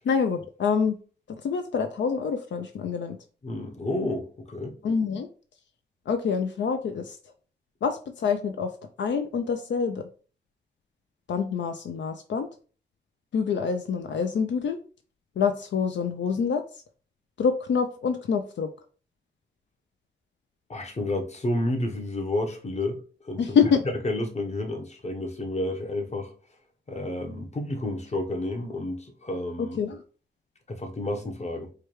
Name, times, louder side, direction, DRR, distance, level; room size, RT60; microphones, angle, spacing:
voice 1, 0.1-1.0 1.4-3.2 4.8-5.3 6.1-7.2 7.8-8.7 9.0-10.0 11.3-12.5 13.3-14.8 15.4-16.6 17.4-18.7 23.4-23.8 29.6-30.0, left 6 dB, 80° left, 0.4 m, -26 dB
voice 2, 3.4-4.8 20.7-23.0 23.2-23.6 24.0-26.3 26.9-29.8 30.7-31.7, left 1 dB, 35° left, 0.8 m, -30 dB
4.7 x 2.2 x 3.0 m
wide cardioid pair, 90°, 19 cm